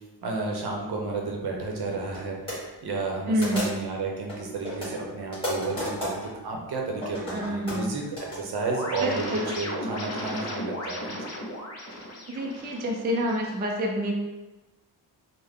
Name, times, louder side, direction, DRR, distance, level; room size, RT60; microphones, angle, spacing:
voice 1, 0.2-6.2 6.4-8.0 8.3-11.3, right 3 dB, 70° right, 0 dB, 0.8 m, -32 dB
sound 1, 0.5-0.7 1.5-1.6 2.0-2.2 2.5-2.6 3.4-4.0 4.3-6.3 6.9-8.4, equal, 15° left, 1.5 m, -33 dB
voice 2, 3.3-3.8 7.3-7.9 9.0-9.6 12.3-14.2, equal, 25° right, 0 dB, 0.3 m, -28 dB
sound 2, 8.6-13.6, equal, 40° left, 0.6 m, -35 dB
3.6 x 2.1 x 3.5 m, 1.1 s
wide cardioid pair, 170°, 40 cm